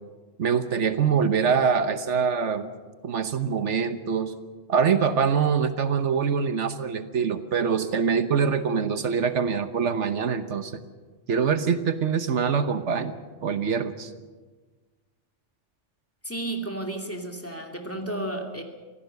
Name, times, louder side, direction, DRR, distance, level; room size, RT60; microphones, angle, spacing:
voice 1, 0.4-2.7 3.0-4.3 4.7-10.8 11.3-13.1 13.4-14.1, right 6 dB, 70° right, 10 dB, 1.3 m, -24 dB
voice 2, 16.2-18.6, right 1 dB, 10° left, 2 dB, 2.5 m, -32 dB
25.5 x 17.0 x 6.8 m, 1.3 s
omnidirectional pair, 1.2 m